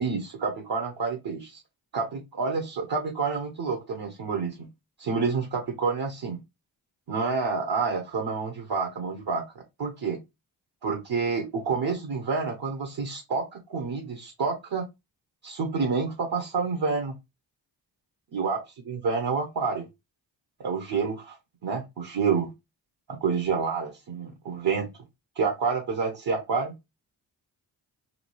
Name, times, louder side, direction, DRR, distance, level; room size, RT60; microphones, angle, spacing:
voice 1, 0.0-1.6 1.9-4.7 5.0-6.4 7.1-9.4 9.8-10.2 10.8-14.8 15.4-17.1 18.3-18.6 18.9-19.9 20.6-21.4 21.6-22.5 23.1-24.9 25.4-26.7, right 5 dB, 50° right, 1.0 m, -28 dB
2.9 x 2.3 x 3.1 m
supercardioid pair, 40°, 46 cm